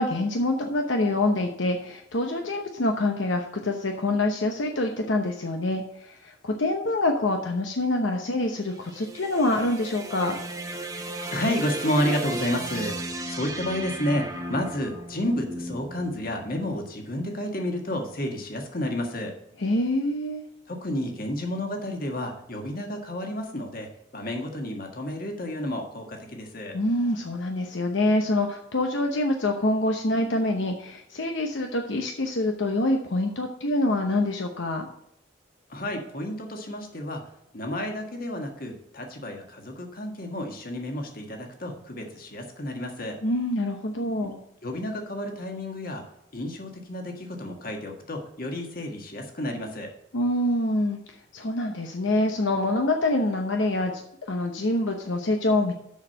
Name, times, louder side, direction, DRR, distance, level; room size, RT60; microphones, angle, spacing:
voice 1, 0.0-10.3 19.6-20.4 26.7-34.9 43.2-44.4 50.1-51.0 51.3-54.0 54.3-55.7, left 1 dB, 75° left, 3 dB, 0.9 m, -25 dB
sound 1, 8.5-16.8, right 1 dB, 20° right, 0.9 m, -36 dB
voice 2, 11.3-13.0 13.3-19.3 20.7-26.8 35.7-37.2 37.5-43.2 44.2-44.3 44.6-46.0 46.3-49.9, left 1 dB, 45° left, 3 dB, 1.6 m, -31 dB
7.2 x 6.3 x 6.4 m, 0.76 s
head